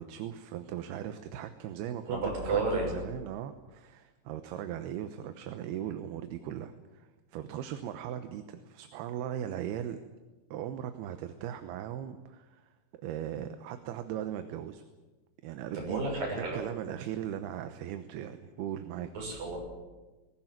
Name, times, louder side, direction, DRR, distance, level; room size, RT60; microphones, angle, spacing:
voice 1, 0.0-10.0 10.5-14.8 15.4-16.1 16.5-19.1, right 10 dB, 80° right, 9 dB, 3.0 m, -38 dB
voice 2, 2.1-2.9 15.7-16.6 19.1-19.6, right 3 dB, 60° right, -1 dB, 8.3 m, -31 dB
20.5 x 18.5 x 9.3 m, 1.2 s
omnidirectional pair, 4.6 m